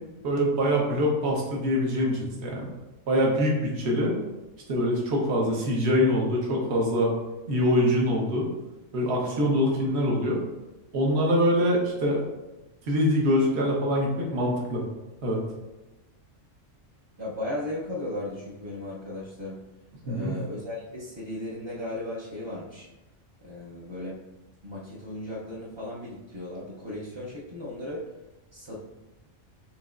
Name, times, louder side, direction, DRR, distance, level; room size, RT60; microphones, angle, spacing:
voice 1, 0.2-2.7 3.1-4.2 4.7-7.1 7.5-8.5 8.9-10.4 10.9-12.2 12.9-14.8 15.2-15.4 20.0-20.4, equal, 60° right, -2 dB, 1.3 m, -24 dB
voice 2, 17.2-19.6 20.0-22.9 23.4-24.2 24.6-28.0 28.5-28.8, left 1 dB, 30° right, -7 dB, 0.5 m, -36 dB
6.9 x 3.0 x 2.5 m, 1.1 s
omnidirectional pair, 1.3 m